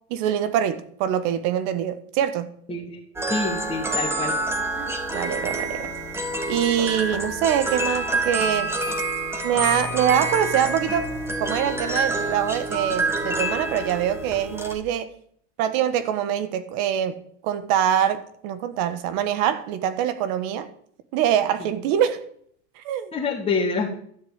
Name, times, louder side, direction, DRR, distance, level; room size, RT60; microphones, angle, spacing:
voice 1, 0.1-2.5 4.8-5.9 6.5-8.7 9.4-11.1 11.4-15.1 15.6-20.7 21.1-22.2 22.8-23.1, right 10 dB, 60° right, 1.5 m, -24 dB
voice 2, 2.7-3.0 3.3-4.3 23.1-23.9, left 4 dB, 20° left, 2.8 m, -26 dB
sound 1, 3.2-14.8, right 2 dB, 5° right, 2.2 m, -27 dB
12.5 x 7.2 x 8.9 m
supercardioid pair, 125°, 34 cm